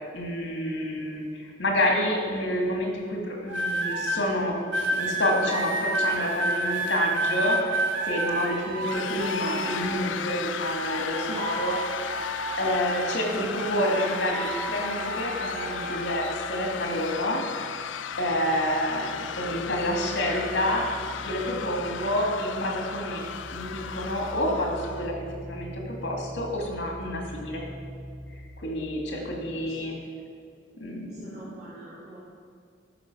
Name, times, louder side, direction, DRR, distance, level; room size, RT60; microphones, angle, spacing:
voice 1, 0.1-4.6 4.9-7.8 8.0-12.1 12.6-17.4 18.2-20.9 21.2-27.6 28.6-29.9 30.8-31.5, left 1 dB, 70° left, 0 dB, 2.2 m, -28 dB
sound 1, 3.5-4.2 4.7-10.2 10.6-13.2 13.5-16.1 16.8-17.1, right 2 dB, 85° right, 1.3 m, -30 dB
sound 2, 8.8-25.1, left 7 dB, 85° left, 0.4 m, -35 dB
sound 3, 9.7-13.5 13.8-29.6, right 1 dB, 15° right, 0.6 m, -46 dB
voice 2, 31.0-32.2, right 1 dB, 60° right, -10 dB, 2.6 m, -46 dB
13.0 x 5.6 x 6.1 m, 2.2 s
head